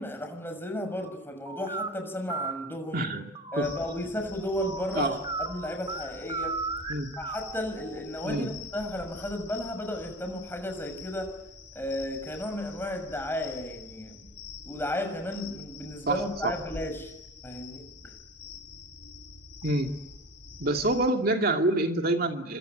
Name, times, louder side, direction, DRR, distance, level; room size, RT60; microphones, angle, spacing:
voice 1, 0.0-3.1 3.5-6.6 7.2-11.3 11.7-14.3 14.6-17.1 17.4-18.1, left 1 dB, 10° left, 5 dB, 6.5 m, -34 dB
sound 1, 1.5-1.9 2.3-2.5 3.1-8.4, right 4 dB, 25° right, 3.3 m, -36 dB
voice 2, 2.9-3.2 3.6-3.7 4.9-5.2 6.9-7.2 8.2-8.5 16.1-16.5 19.6-19.9 20.6-22.6, right 2 dB, 55° right, 4 dB, 2.5 m, -27 dB
sound 2, 3.6-21.1, left 5 dB, 60° left, 4.1 m, -46 dB
25.5 x 25.0 x 9.2 m, 0.84 s
head